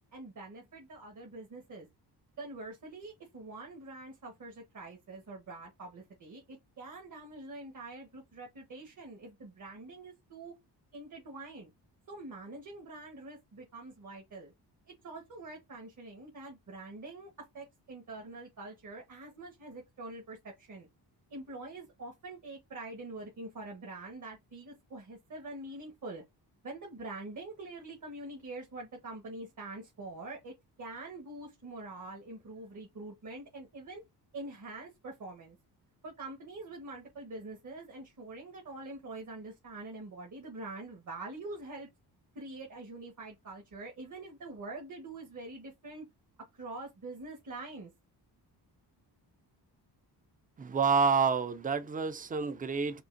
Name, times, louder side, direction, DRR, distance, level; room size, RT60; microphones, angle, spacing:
voice 1, 0.1-1.9 2.4-10.5 10.9-11.7 12.1-14.5 15.0-17.3 17.5-20.9 21.3-26.2 26.6-34.0 34.3-35.6 36.0-41.9 42.3-46.1 46.6-47.9, right 2 dB, 45° right, 1.3 m, -45 dB
voice 2, 50.6-53.0, right 5 dB, 20° right, 0.5 m, -28 dB
5.3 x 2.4 x 2.5 m
cardioid pair, 110°, 41 cm